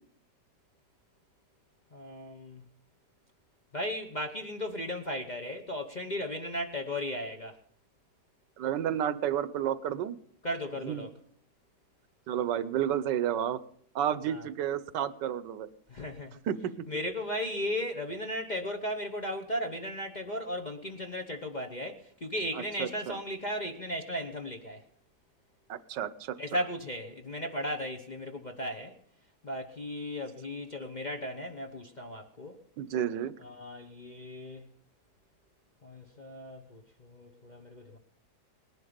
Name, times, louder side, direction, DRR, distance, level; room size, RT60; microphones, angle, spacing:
voice 1, 1.9-2.6 3.7-7.6 10.4-11.1 14.3-14.5 15.9-16.4 16.9-24.8 26.4-28.9 29.4-32.5 33.4-34.7 35.8-38.0, equal, 35° left, 0.8 m, -36 dB
voice 2, 8.6-10.2 10.8-11.1 12.3-13.6 13.9-15.7 16.5-16.7 22.5-23.2 25.7-26.4 32.8-33.3, right 10 dB, 80° right, 1.4 m, -31 dB
19.5 x 11.0 x 5.1 m
omnidirectional pair, 1.9 m